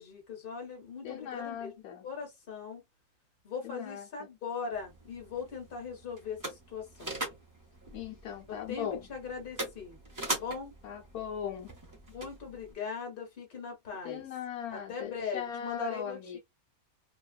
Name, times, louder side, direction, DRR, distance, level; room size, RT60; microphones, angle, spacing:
voice 1, 0.0-2.8 3.4-7.2 8.5-10.0 10.2-10.7 12.1-14.2 14.7-16.4, left 5 dB, 40° left, 1.4 m, -40 dB
voice 2, 1.0-2.1 3.6-4.1 7.9-9.0 10.8-11.7 14.0-16.4, left 9 dB, 80° left, 1.2 m, -38 dB
sound 1, 4.7-12.7, right 1 dB, 20° right, 0.6 m, -42 dB
2.9 x 2.3 x 2.3 m
omnidirectional pair, 1.5 m